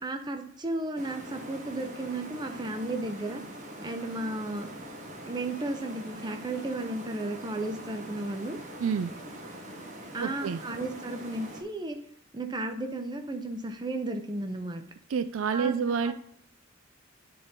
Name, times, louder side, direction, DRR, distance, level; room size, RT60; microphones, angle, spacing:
voice 1, 0.0-3.4 3.8-4.7 5.2-8.6 10.1-12.0 12.3-14.8 15.5-15.8 16.0-16.1, right 2 dB, 20° right, 6 dB, 0.7 m, -34 dB
sound 1, 1.0-11.6, right 1 dB, 40° right, 1.1 m, -43 dB
voice 2, 8.8-9.1 10.2-10.6 15.1-16.1, right 6 dB, 75° right, 13 dB, 0.4 m, -28 dB
10.0 x 4.0 x 3.7 m, 0.70 s
head